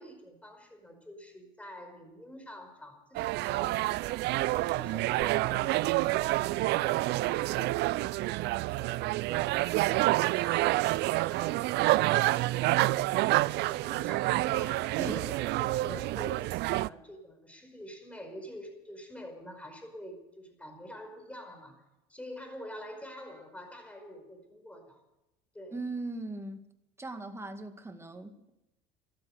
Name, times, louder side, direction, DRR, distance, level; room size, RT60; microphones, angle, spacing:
voice 1, 0.0-3.9 4.5-25.0 25.5-25.8, equal, 5° left, 5 dB, 5.2 m, -47 dB
sound 1, 3.1-16.9, right 19 dB, 55° right, 0.5 m, -28 dB
voice 2, 25.7-26.6 27.0-28.5, right 2 dB, 10° right, 7 dB, 2.0 m, -39 dB
13.0 x 12.5 x 8.0 m, 0.92 s
hypercardioid pair, 85°, 21 cm